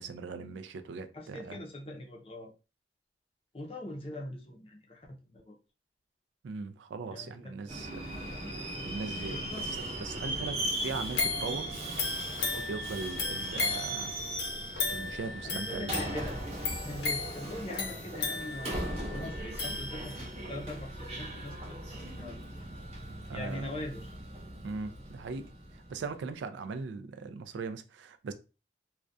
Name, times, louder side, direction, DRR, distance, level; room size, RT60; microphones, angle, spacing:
voice 1, 0.0-1.6 6.4-8.1 8.8-11.7 12.5-14.1 14.9-16.0 23.3-23.7 24.6-28.3, right 4 dB, 85° right, 0.3 m, -39 dB
voice 2, 1.1-2.5 3.5-5.5 7.1-7.7 9.3-9.7 10.1-10.2 15.4-16.4 16.8-22.4 23.3-24.1, left 1 dB, 30° left, 0.5 m, -42 dB
Subway metro underground, 7.7-26.1, right 1 dB, 35° right, 0.6 m, -39 dB
sound 1, 11.1-20.4 20.9-21.0, left 3 dB, 75° left, 0.6 m, -36 dB
2.3 x 2.1 x 2.5 m
head